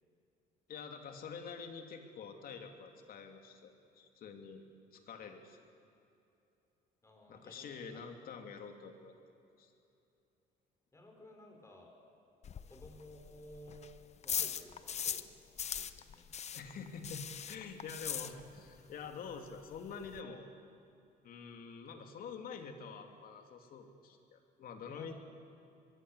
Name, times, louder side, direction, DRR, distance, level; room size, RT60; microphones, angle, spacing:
voice 1, 0.7-4.6 4.9-5.6 7.3-9.1 9.6-9.7 16.5-20.5 21.2-25.1, left 5 dB, 60° left, 4 dB, 3.0 m, -47 dB
voice 2, 7.0-8.0 10.9-11.9 12.7-13.9 14.2-15.3 15.7-16.3 24.9-25.1, equal, 15° left, 2 dB, 5.6 m, -55 dB
sound 1, 12.4-15.3 15.6-18.8 19.0-19.1 19.5-19.6 19.7-20.2, left 8 dB, 40° left, 1.0 m, -40 dB
23.5 x 22.0 x 8.3 m, 2.7 s
cardioid pair, 110°, 17 cm